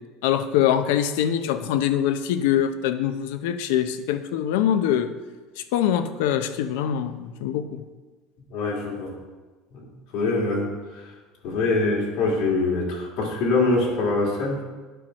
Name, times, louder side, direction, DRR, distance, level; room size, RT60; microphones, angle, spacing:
voice 1, 0.2-5.1 5.7-7.8, left 10 dB, 85° left, 10 dB, 0.7 m, -23 dB
voice 2, 8.5-9.1 9.7-9.8 10.1-11.1 11.4-14.6, left 3 dB, 50° left, -3 dB, 2.3 m, -24 dB
10.0 x 4.6 x 6.3 m, 1.3 s
cardioid pair, 165°, 0 cm